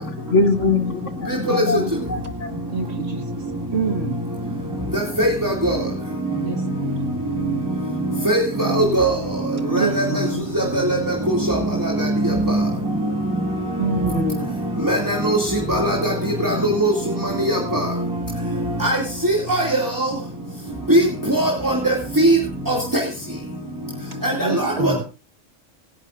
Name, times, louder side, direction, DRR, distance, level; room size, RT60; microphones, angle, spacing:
voice 1, 0.0-2.6 10.3-10.9 11.6-11.7 24.3-24.5, left 3 dB, 75° left, 7 dB, 1.7 m, -24 dB
voice 2, 2.7-3.2 3.7-4.3 6.4-6.9 9.7-10.3 13.8-14.6 24.4-25.0, right 4 dB, 55° right, 4 dB, 1.9 m, -26 dB
voice 3, 4.9-5.8 8.2-9.1 9.7-10.3 10.5-11.0 11.3-12.6 14.8-16.1 16.4-16.9 17.2-17.9 18.8-19.0 19.2-20.1 20.9-22.4 22.7-23.0 24.2-25.0, right 1 dB, 15° right, -1 dB, 2.7 m, -20 dB
26.0 x 10.5 x 2.6 m, 0.30 s
omnidirectional pair, 1.3 m